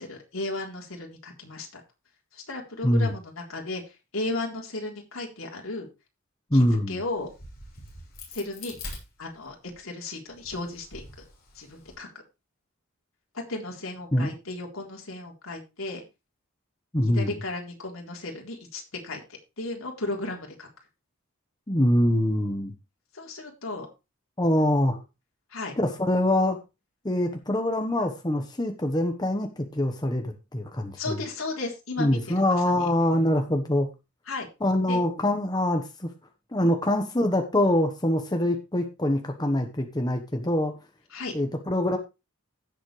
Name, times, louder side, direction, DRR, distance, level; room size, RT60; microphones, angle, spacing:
voice 1, 0.0-1.8 2.3-5.9 6.5-7.3 8.3-8.8 9.2-11.0 11.5-12.1 13.5-16.0 17.0-19.2 19.6-20.7 23.1-23.9 25.5-25.7 31.0-32.2 32.7-32.8 34.3-34.5 34.9-35.0 36.6-36.7 41.1-41.3, left 2 dB, 70° left, 0 dB, 3.8 m, -35 dB
voice 2, 6.5-7.0 14.1-14.3 16.9-17.3 21.7-22.7 24.4-25.0 25.8-26.6 27.0-31.2 32.0-33.9 34.6-36.1 36.5-40.7 41.3-42.0, left 1 dB, 20° left, 4 dB, 1.2 m, -24 dB
Crack, 7.1-9.8 10.3-12.0, left 2 dB, 45° left, 7.0 m, -44 dB
17.0 x 7.2 x 3.3 m, 0.27 s
head